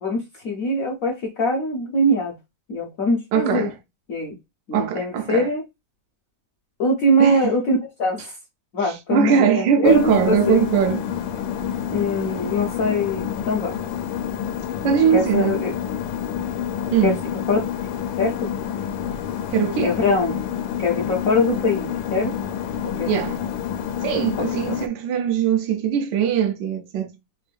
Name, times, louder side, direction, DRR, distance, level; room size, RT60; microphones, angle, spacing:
voice 1, 0.0-2.3 2.7-3.7 4.1-4.4 4.7-5.6 6.8-8.3 8.7-10.6 11.9-13.7 15.1-15.7 17.0-17.1 17.5-17.6 18.2-18.5 19.8-20.4 20.8-22.3 23.0-23.1 24.7-24.8, left 1 dB, 60° left, 0.9 m, -22 dB
voice 2, 3.3-3.7 4.7-5.5 7.2-7.5 8.8-11.0 14.8-15.6 16.9-17.2 19.5-19.9 23.1-23.4 24.0-27.1, right 8 dB, 70° right, 1.2 m, -21 dB
sound 1, 9.8-24.9, left 9 dB, 75° left, 1.3 m, -28 dB
3.5 x 2.5 x 3.3 m
omnidirectional pair, 2.2 m